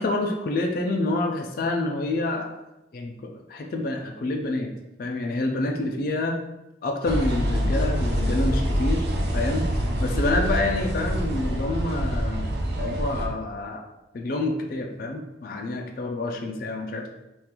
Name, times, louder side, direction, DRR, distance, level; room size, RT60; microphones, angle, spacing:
voice 1, 0.0-2.5 2.9-4.7 5.0-6.4 6.8-9.0 9.3-9.7 10.0-12.5 12.8-13.8 14.1-17.1, left 2 dB, 50° left, 2 dB, 0.3 m, -27 dB
sound 1, 7.1-13.3, equal, 60° right, 0.5 m, -25 dB
3.7 x 2.4 x 2.9 m, 0.97 s
head